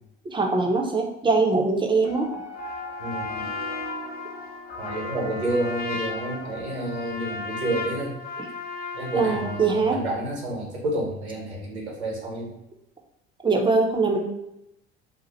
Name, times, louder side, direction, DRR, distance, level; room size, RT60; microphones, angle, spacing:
voice 1, 0.3-2.3 9.2-10.0 13.4-14.2, right 3 dB, 15° right, 2 dB, 0.7 m, -22 dB
sound 1, 2.0-6.4, equal, 50° left, 1.2 m, -39 dB
Trumpet, 2.5-9.8, left 4 dB, 30° left, 0.6 m, -35 dB
voice 2, 3.0-3.5 4.8-8.1 8.9-12.5, right 1 dB, 80° right, -2 dB, 1.2 m, -29 dB
2.8 x 2.4 x 4.1 m, 0.86 s
figure-of-eight pair, 60°, 32 cm